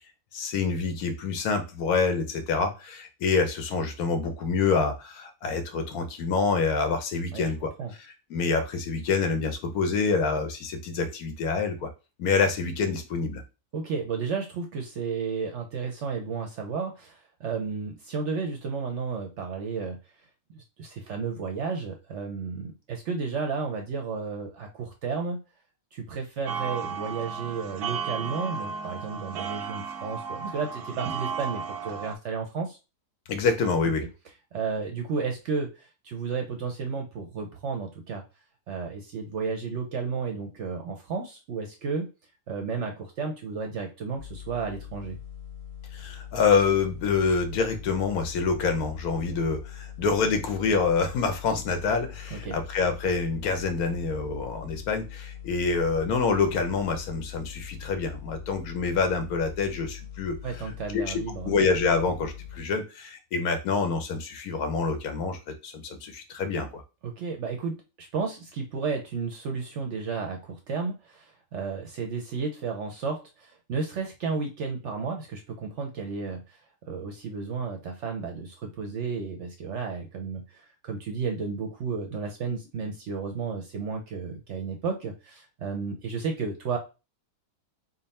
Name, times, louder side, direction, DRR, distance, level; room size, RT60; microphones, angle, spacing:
voice 1, 0.3-7.7 8.3-11.9 12.2-13.4 33.3-34.0 45.9-60.4 60.9-61.1 61.5-66.8, left 4 dB, 75° left, 7 dB, 1.2 m, -26 dB
voice 2, 13.7-20.0 20.5-25.4 25.9-32.8 34.0-34.1 34.5-38.2 38.7-42.1 42.5-45.2 52.3-52.6 60.4-61.6 67.0-76.6 76.9-86.8, right 5 dB, 65° right, 3 dB, 0.7 m, -33 dB
sound 1, 26.5-32.1, right 6 dB, 90° right, 1.1 m, -34 dB
sound 2, 44.2-62.6, left 10 dB, 35° left, 0.7 m, -42 dB
3.7 x 2.1 x 4.1 m, 0.29 s
omnidirectional pair, 1.6 m